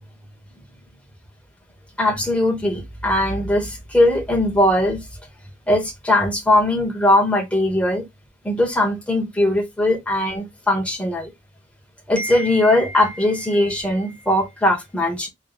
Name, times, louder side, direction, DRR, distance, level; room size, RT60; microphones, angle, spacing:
voice 1, 2.0-5.0 5.7-8.0 8.4-11.3 12.1-15.3, left 1 dB, 5° left, 1.3 m, -20 dB
3.4 x 3.3 x 2.4 m
head